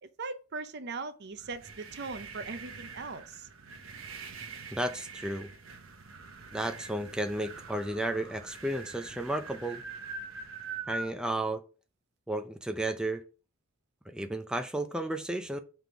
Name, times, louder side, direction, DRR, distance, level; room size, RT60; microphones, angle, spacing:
voice 1, 0.0-3.5, right 4 dB, 55° right, 0.6 m, -40 dB
sound 1, 1.3-11.1, right 4 dB, 80° right, 1.0 m, -44 dB
voice 2, 4.7-5.5 6.5-9.8 10.9-11.6 12.3-13.2 14.1-15.6, right 1 dB, 5° right, 0.4 m, -33 dB
5.9 x 3.5 x 4.6 m
head